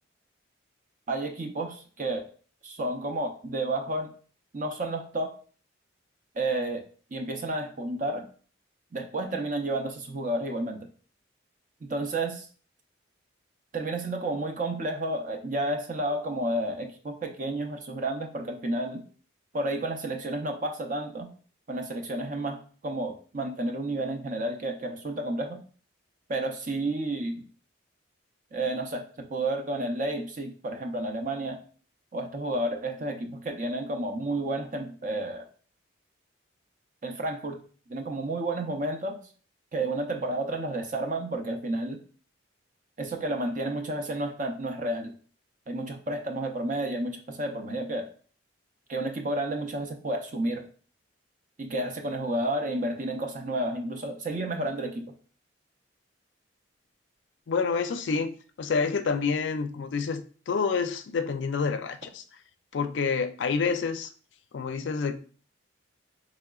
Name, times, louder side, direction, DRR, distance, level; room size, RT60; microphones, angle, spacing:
voice 1, 1.1-2.2 2.6-4.1 4.5-5.3 6.4-6.8 7.1-8.3 8.9-10.9 11.8-12.5 13.7-19.0 19.5-21.3 21.7-25.6 26.3-27.4 28.5-29.0 29.3-31.6 32.1-35.4 37.0-37.6 37.9-39.2 39.7-42.0 43.0-45.2 45.7-48.1 48.9-50.6 51.6-55.1, right 1 dB, 40° right, 0.5 m, -31 dB
voice 2, 57.5-58.3 58.6-60.2 60.5-62.2 62.7-64.1 64.5-65.1, left 5 dB, 65° left, 0.4 m, -28 dB
4.7 x 3.1 x 2.3 m
head